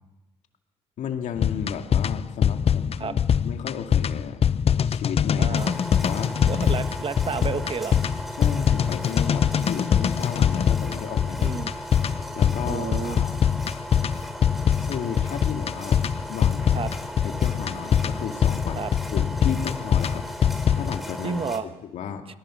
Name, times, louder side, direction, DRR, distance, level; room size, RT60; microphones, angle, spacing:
voice 1, 1.0-3.2 3.4-4.4 4.8-6.4 8.4-11.6 12.3-13.4 14.8-16.0 16.3-16.8 17.2-20.2 20.7-22.2, left 8 dB, 75° left, 5 dB, 2.2 m, -33 dB
sound 1, 1.4-21.0, left 8 dB, 50° left, 0.7 m, -23 dB
voice 2, 5.4-5.7 6.5-8.2 11.4-11.8 12.7-13.3 16.7-16.9 18.7-18.9 21.2-21.7, right 5 dB, 50° right, 9 dB, 1.5 m, -31 dB
sound 2, 5.5-21.6, equal, ahead, 3.5 m, -37 dB
26.5 x 19.0 x 6.3 m, 1.0 s
supercardioid pair, 55°, 13 cm